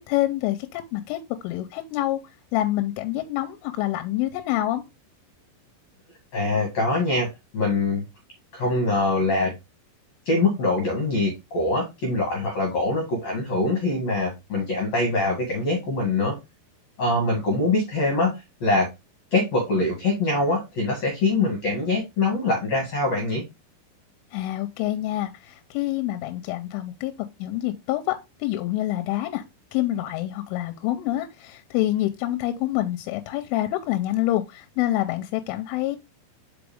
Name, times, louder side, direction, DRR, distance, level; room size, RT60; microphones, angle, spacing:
voice 1, 0.1-2.2 2.5-4.8 24.3-27.1 27.4-29.4 29.7-36.0, left 15 dB, 85° left, 3.1 m, -27 dB
voice 2, 6.3-7.3 7.5-8.0 8.5-9.5 10.3-16.3 17.0-18.9 19.3-23.4, left 2 dB, 55° left, 2.0 m, -23 dB
6.1 x 5.0 x 3.5 m
omnidirectional pair, 5.8 m